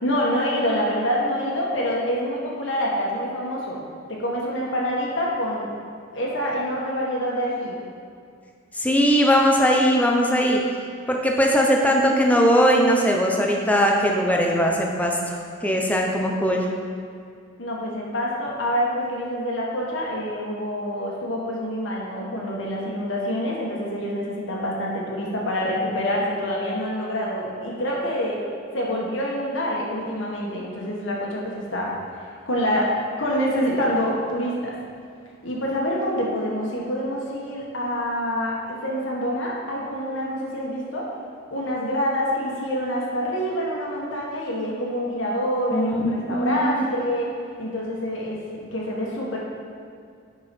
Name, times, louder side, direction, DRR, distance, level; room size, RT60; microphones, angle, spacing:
voice 1, 0.0-3.8 4.1-5.7 6.1-7.7 17.6-28.4 28.7-31.9 32.5-32.9 33.2-34.7 35.4-41.1 41.5-47.3 47.6-49.4, equal, 70° left, -4 dB, 1.4 m, -26 dB
voice 2, 8.7-10.6 11.1-15.4 15.6-16.7 45.7-46.7, equal, 5° left, 0 dB, 0.7 m, -20 dB
10.5 x 4.7 x 4.4 m, 2.3 s
head